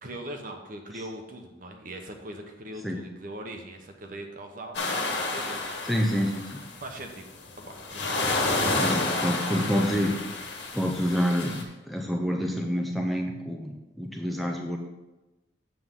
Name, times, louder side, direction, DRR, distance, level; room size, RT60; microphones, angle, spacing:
voice 1, 0.0-4.8 5.3-5.9 6.8-7.2 7.6-8.2, right 1 dB, 45° right, 4 dB, 1.1 m, -41 dB
sound 1, 4.7-6.9 7.5-11.6, left 2 dB, 65° left, 1.7 m, -30 dB
voice 2, 5.8-6.6 8.8-10.1 10.7-11.6 11.8-14.8, equal, ahead, 1 dB, 0.6 m, -27 dB
8.0 x 7.6 x 3.7 m, 1.1 s
head